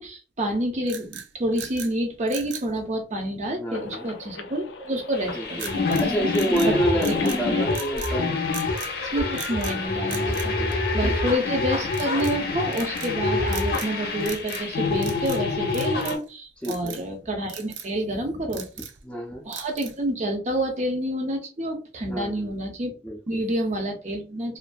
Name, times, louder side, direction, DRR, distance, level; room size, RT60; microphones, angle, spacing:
voice 1, 0.0-6.0 6.7-7.7 9.0-18.7 19.4-23.0 23.3-24.6, right 1 dB, 40° right, 0.6 m, -28 dB
sound 1, 0.8-1.9 2.3-2.7 5.6-6.1 6.3-7.4 7.7-8.2 8.5-8.9 9.3-9.8 10.1-11.3 11.9-12.4 12.7-13.1 13.5-13.9 14.2-14.7 15.0-15.4 15.7-16.3 16.6-17.0 17.5-17.9 18.3-19.0 19.5-20.1, right 8 dB, 85° right, 0.4 m, -39 dB
voice 2, 3.5-4.1 5.3-5.7 6.0-8.4 10.6-10.8 11.0-11.1 16.6-17.0 18.3-18.6 19.0-19.4 22.1-22.5 23.0-23.4, right 1 dB, 5° left, 0.4 m, -28 dB
sound 2, 3.7-11.4, left 5 dB, 85° left, 0.4 m, -39 dB
sound 3, 5.1-16.2, left 3 dB, 60° left, 0.7 m, -26 dB
2.5 x 2.4 x 2.2 m
head